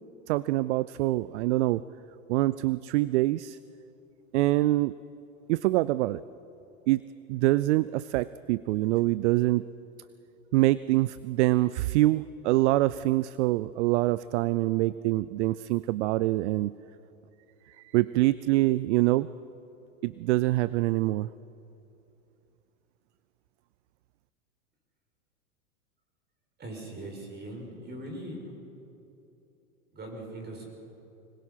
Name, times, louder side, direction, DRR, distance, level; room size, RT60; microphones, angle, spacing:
voice 1, 0.3-1.8 2.3-3.6 4.3-4.9 5.5-6.2 6.9-9.7 10.5-16.8 17.7-19.3 20.0-21.3, right 18 dB, 60° right, 18 dB, 0.6 m, -25 dB
voice 2, 26.6-28.4 29.9-30.7, right 1 dB, 25° right, 1 dB, 6.6 m, -40 dB
25.5 x 21.5 x 5.8 m, 2.8 s
hypercardioid pair, 110°, 40 cm